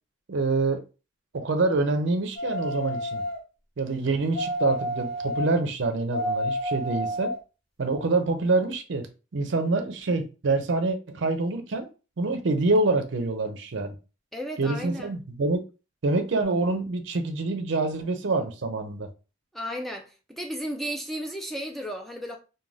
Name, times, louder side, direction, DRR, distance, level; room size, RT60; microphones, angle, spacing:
voice 1, 0.3-0.8 1.3-3.2 3.8-7.4 7.8-11.9 12.2-14.0 14.6-15.6 16.0-19.1, right 3 dB, 60° right, 0.5 m, -26 dB
sound 1, 2.4-3.4 4.3-5.5 6.1-7.4 7.9-8.0, left 1 dB, 25° left, 0.9 m, -29 dB
voice 2, 14.3-15.1 19.5-22.4, equal, ahead, 0.3 m, -34 dB
2.4 x 2.2 x 3.2 m
head